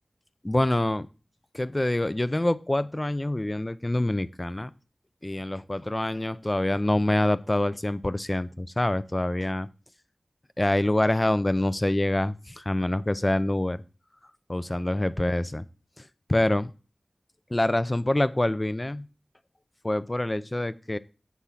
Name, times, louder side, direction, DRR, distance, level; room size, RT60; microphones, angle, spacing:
voice 1, 0.4-1.1 1.5-4.7 5.2-9.7 10.6-13.8 14.5-15.7 16.3-16.7 17.5-19.1 19.8-21.0, left 1 dB, 25° left, 16 dB, 0.4 m, -26 dB
8.2 x 3.6 x 5.7 m, 0.34 s
wide cardioid pair, 65°, 0 cm